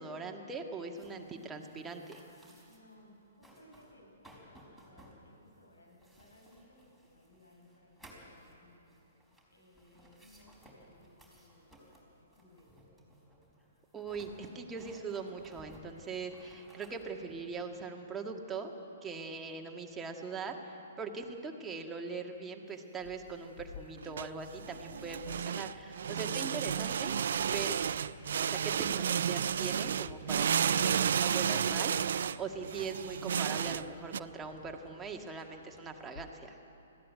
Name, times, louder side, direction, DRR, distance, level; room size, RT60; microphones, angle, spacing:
voice 1, 0.0-2.2 13.9-18.7 19.0-27.8 28.4-36.6, right 4 dB, 15° right, 2 dB, 1.9 m, -41 dB
sound 1, 1.0-3.0 3.3-4.0 4.2-17.6, equal, ahead, 4.5 m, -59 dB
voice 2, 2.4-8.9 9.5-12.7, left 1 dB, 85° left, -1 dB, 7.0 m, -62 dB
sound 2, 23.0-36.3, left 5 dB, 55° left, 1.1 m, -55 dB
sound 3, 24.0-34.2, right 8 dB, 60° right, 0.4 m, -32 dB
20.0 x 15.5 x 9.4 m, 2.8 s
figure-of-eight pair, 120°, 0 cm